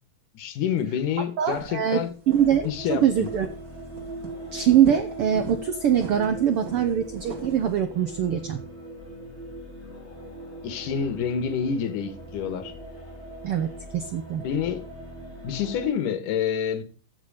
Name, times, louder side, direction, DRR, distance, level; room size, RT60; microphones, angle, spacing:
voice 1, 0.3-2.1 2.6-3.3 10.6-12.7 14.4-14.8 15.4-16.8, left 7 dB, 70° left, 2.9 m, -28 dB
voice 2, 1.4-2.0 2.3-3.5 4.5-8.6 13.4-14.4, right 9 dB, 85° right, 1.2 m, -23 dB
sound 1, 1.5-1.9 2.3-2.7 3.2-3.6 3.9-4.3 4.6-5.6 5.9-7.7, right 5 dB, 30° right, 1.9 m, -38 dB
sound 2, 2.2-15.9, right 2 dB, 20° left, 2.3 m, -40 dB
15.0 x 6.3 x 5.1 m
omnidirectional pair, 3.9 m